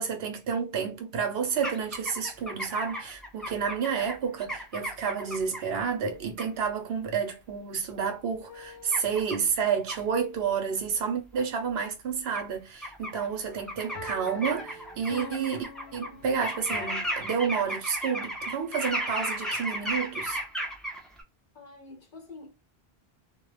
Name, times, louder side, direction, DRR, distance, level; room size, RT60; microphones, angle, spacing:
voice 1, 0.0-20.4, right 6 dB, 75° right, 0.9 m, -30 dB
sound 1, 1.6-5.6 6.4-6.5 8.9-9.4 9.9-10.0 11.4-11.5 12.3-12.4 12.8-13.3 13.6-16.1 16.4-21.2, equal, ahead, 0.3 m, -34 dB
sound 2, 8.5-9.5 13.9-17.1, left 4 dB, 80° left, 0.8 m, -44 dB
voice 2, 21.5-22.5, left 3 dB, 55° left, 0.9 m, -46 dB
2.3 x 2.1 x 3.1 m
omnidirectional pair, 1.1 m